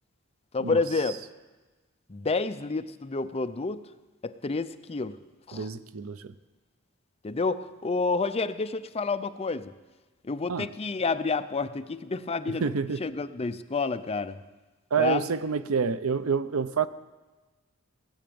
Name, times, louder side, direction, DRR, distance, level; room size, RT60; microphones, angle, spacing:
voice 1, 0.5-1.2 2.1-3.8 4.2-5.2 5.5-5.7 7.2-9.7 10.2-12.7 13.0-14.4 15.0-15.3, left 4 dB, 30° left, 10 dB, 0.6 m, -29 dB
voice 2, 5.5-6.3 10.5-10.7 12.5-13.0 14.9-16.9, right 5 dB, 85° right, 14 dB, 0.6 m, -28 dB
17.5 x 8.8 x 7.0 m, 1.2 s
head